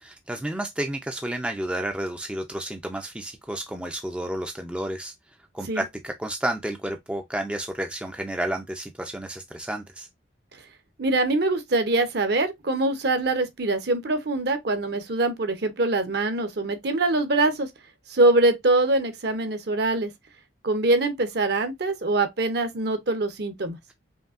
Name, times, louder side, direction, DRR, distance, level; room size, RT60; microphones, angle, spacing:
voice 1, 0.0-5.1 5.5-10.1, right 1 dB, 5° right, 0.4 m, -31 dB
voice 2, 11.0-17.7 18.1-20.1 20.6-23.8, right 2 dB, 55° right, 0.8 m, -23 dB
5.2 x 2.7 x 2.5 m
head